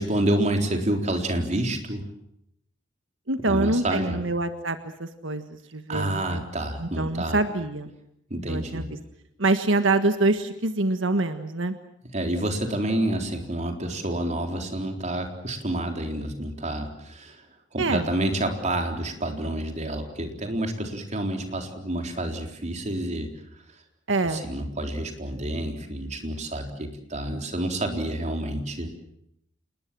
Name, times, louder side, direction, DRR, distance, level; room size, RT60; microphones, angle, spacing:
voice 1, 0.0-2.1 3.5-4.2 5.9-7.4 8.3-9.0 12.1-17.4 17.7-23.3 24.3-28.9, right 1 dB, 40° right, 4 dB, 4.0 m, -28 dB
voice 2, 3.3-6.4 6.8-7.9 8.5-8.9 9.4-11.7 17.8-18.1 24.1-24.5, right 2 dB, 85° right, 8 dB, 1.6 m, -25 dB
28.0 x 20.5 x 7.6 m, 0.76 s
head